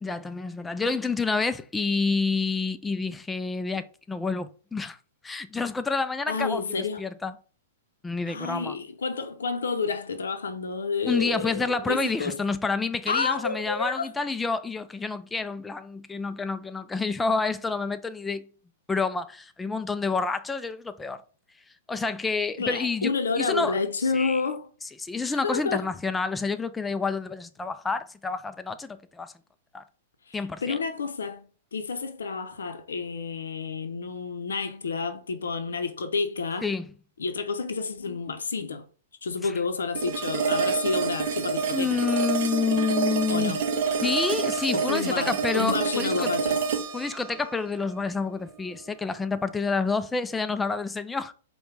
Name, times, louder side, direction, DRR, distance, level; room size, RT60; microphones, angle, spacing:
voice 1, 0.0-5.0 5.2-7.3 8.0-8.8 11.1-18.5 18.9-21.2 21.9-23.8 24.1-24.4 25.0-29.3 29.7-29.8 30.3-30.8 36.6-36.9 39.4-39.5 41.7-43.6 44.0-46.3 46.9-51.3, left 4 dB, 10° left, 0.3 m, -28 dB
voice 2, 6.3-7.0 8.3-12.3 13.1-14.1 22.6-24.7 25.3-25.9 30.3-36.7 37.2-38.9 39.2-41.9 43.3-43.6 44.7-46.6, left 4 dB, 85° left, 0.6 m, -30 dB
sound 1, 39.9-49.0, right 5 dB, 60° right, 0.7 m, -28 dB
4.8 x 2.2 x 3.2 m
hypercardioid pair, 125°, 0 cm